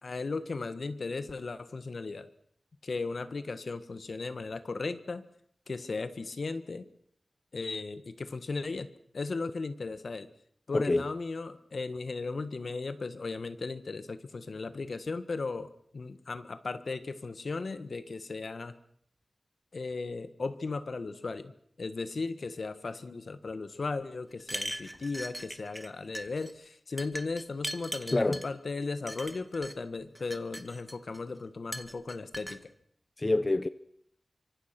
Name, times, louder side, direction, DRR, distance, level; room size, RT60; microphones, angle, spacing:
voice 1, 0.0-2.3 2.8-5.2 5.7-6.8 7.5-8.9 9.1-10.3 10.7-18.7 19.7-21.5 21.8-32.7, left 3 dB, 70° left, 1.6 m, -36 dB
voice 2, 10.7-11.1 28.1-28.4 33.2-33.7, left 2 dB, 35° left, 0.8 m, -27 dB
sound 1, 24.4-25.9 26.1-26.5 27.0-28.5 29.1-29.7 30.2-31.2 31.7-32.6, equal, 5° right, 1.9 m, -39 dB
25.0 x 24.0 x 6.1 m
wide cardioid pair, 65°, 0 cm